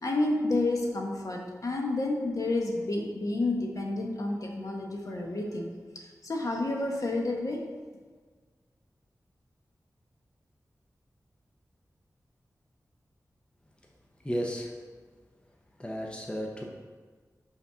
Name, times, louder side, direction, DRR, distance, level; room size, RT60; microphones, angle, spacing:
voice 1, 0.0-5.7 6.2-7.6, left 2 dB, 60° left, 0 dB, 1.0 m, -30 dB
voice 2, 14.2-14.7 15.8-16.6, equal, 15° left, 0 dB, 0.7 m, -33 dB
5.8 x 4.1 x 5.5 m, 1.5 s
wide cardioid pair, 100°, 6 cm